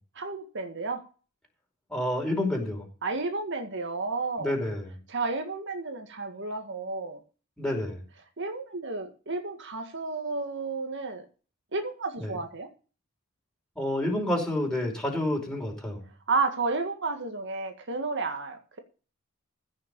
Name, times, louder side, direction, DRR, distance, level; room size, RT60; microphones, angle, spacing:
voice 1, 0.2-1.0 3.0-4.5 5.1-7.2 8.4-11.2 11.7-12.7 16.3-18.8, right 3 dB, 60° right, 6 dB, 1.9 m, -32 dB
voice 2, 1.9-2.8 4.4-4.9 7.6-8.0 12.2-12.4 13.7-16.0, left 1 dB, 5° left, 0 dB, 5.0 m, -29 dB
15.5 x 6.8 x 6.8 m, 0.37 s
head